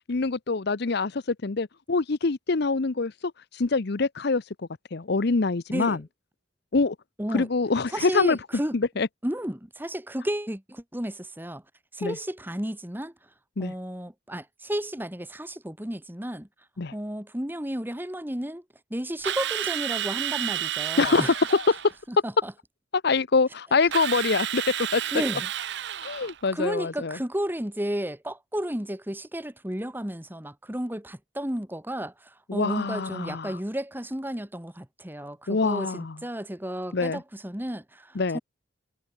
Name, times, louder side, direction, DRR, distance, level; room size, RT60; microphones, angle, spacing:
voice 1, 0.1-3.3 3.6-4.4 4.9-6.0 6.7-7.0 7.3-8.4 8.7-9.1 12.0-12.2 13.6-13.7 16.8-16.9 21.0-21.8 23.0-24.6 24.9-25.0 26.0-27.2 32.5-33.5 35.5-36.2 36.9-37.2 38.1-38.4, left 4 dB, 55° left, 0.7 m, -25 dB
voice 2, 7.9-8.8 9.2-11.6 11.9-13.1 13.6-16.5 16.9-18.6 18.9-21.3 22.1-22.5 25.1-25.5 26.5-38.4, right 1 dB, 10° right, 1.8 m, -32 dB
Drill, 19.2-21.9 23.9-26.4, right 11 dB, 60° right, 0.8 m, -31 dB
head